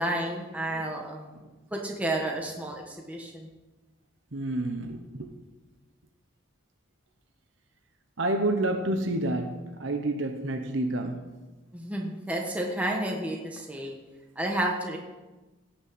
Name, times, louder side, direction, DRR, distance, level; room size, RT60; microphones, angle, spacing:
voice 1, 0.0-1.3 1.7-3.5 11.7-14.0 14.3-15.0, right 1 dB, 5° right, 1.5 m, -31 dB
voice 2, 4.3-5.3 8.2-11.3, right 1 dB, 70° right, 1.1 m, -29 dB
17.5 x 6.5 x 7.9 m
head